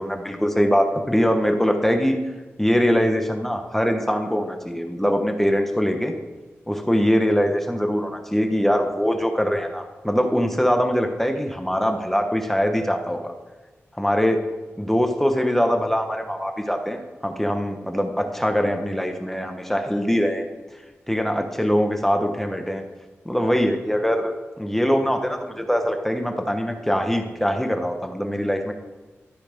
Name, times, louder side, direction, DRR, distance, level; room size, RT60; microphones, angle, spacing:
voice 1, 0.0-2.2 2.6-6.1 6.7-13.3 14.0-14.4 14.8-20.4 21.1-22.8 23.2-28.7, equal, 5° left, 5 dB, 1.1 m, -22 dB
13.0 x 4.3 x 5.1 m, 1.2 s
cardioid pair, 65°, 5 cm